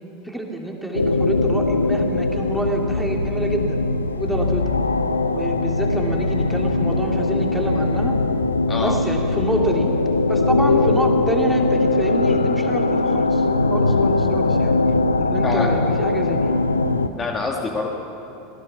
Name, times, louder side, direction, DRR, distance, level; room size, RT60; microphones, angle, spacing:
voice 1, 0.2-3.8 4.1-4.7 5.3-8.2 8.8-9.9 10.3-13.4 13.7-14.8 15.2-16.5, right 1 dB, ahead, 0 dB, 3.0 m, -27 dB
sound 1, 0.9-17.1, left 3 dB, 85° left, 0.7 m, -20 dB
voice 2, 8.7-9.0 15.4-15.7 17.1-17.9, left 3 dB, 25° left, 1 dB, 2.0 m, -25 dB
25.5 x 18.5 x 6.1 m, 2.9 s
figure-of-eight pair, 80°, 0 cm